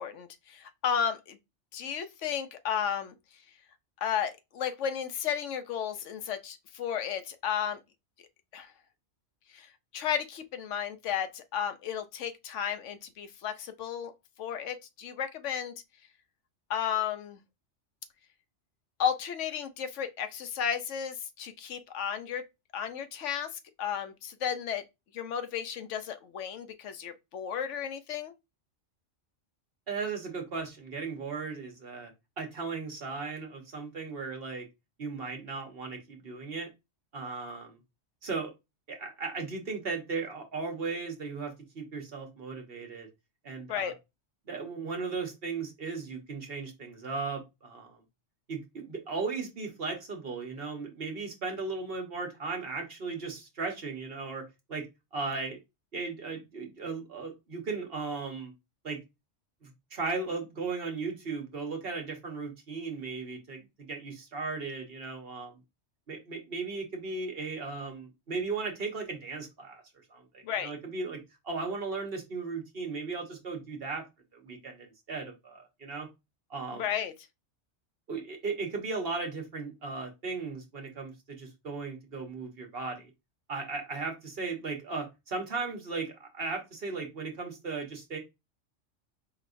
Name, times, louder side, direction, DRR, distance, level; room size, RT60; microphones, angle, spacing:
voice 1, 0.0-1.4 1.7-3.1 4.0-7.8 8.5-8.7 9.5-9.7 9.9-14.1 14.4-15.7 16.7-17.4 19.0-22.4 22.7-23.5 23.8-24.8 25.1-28.3 43.7-43.9 70.4-70.7 76.8-77.1, left 8 dB, 80° left, 1.0 m, -33 dB
voice 2, 29.9-32.1 32.4-34.6 35.0-36.7 37.1-37.8 38.2-38.5 38.9-43.1 43.4-43.9 44.5-48.0 48.5-54.4 54.7-54.8 55.1-55.6 55.9-58.5 58.8-59.0 59.6-65.6 66.1-69.8 70.1-71.2 71.4-74.0 74.3-76.1 76.5-76.9 78.1-83.1 83.5-88.2, right 4 dB, 55° right, 1.3 m, -36 dB
4.8 x 3.2 x 2.6 m
omnidirectional pair, 1.2 m